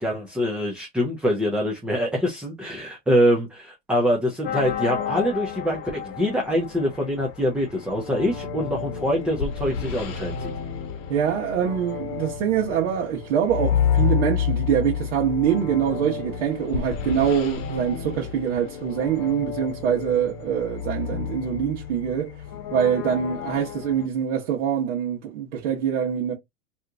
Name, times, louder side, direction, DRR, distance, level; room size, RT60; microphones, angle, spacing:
voice 1, 0.0-10.5, equal, 5° right, 0.4 m, -24 dB
sound 1, 4.4-24.1, left 8 dB, 45° left, 1.0 m, -30 dB
voice 2, 11.1-22.3 22.7-26.3, right 8 dB, 65° right, 1.1 m, -24 dB
2.8 x 2.5 x 3.4 m
supercardioid pair, 145°, 37 cm